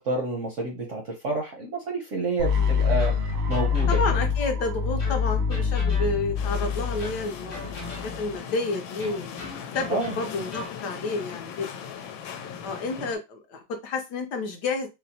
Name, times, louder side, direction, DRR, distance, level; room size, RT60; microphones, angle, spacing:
voice 1, 0.0-4.0 9.9-10.1 13.0-13.1, right 3 dB, 60° right, 0 dB, 0.8 m, -29 dB
sound 1, 2.4-8.3, left 6 dB, 90° right, 1.4 m, -26 dB
sound 2, 3.0-4.4 5.0-6.5 7.0-8.3 9.0-10.8, left 1 dB, 45° left, 0.5 m, -41 dB
voice 2, 3.9-9.3 9.7-11.9 12.6-14.9, left 3 dB, 70° left, 4 dB, 1.1 m, -30 dB
sound 3, 6.4-13.2, left 7 dB, 90° left, 1.4 m, -38 dB
4.2 x 2.0 x 2.7 m, 0.24 s
omnidirectional pair, 2.1 m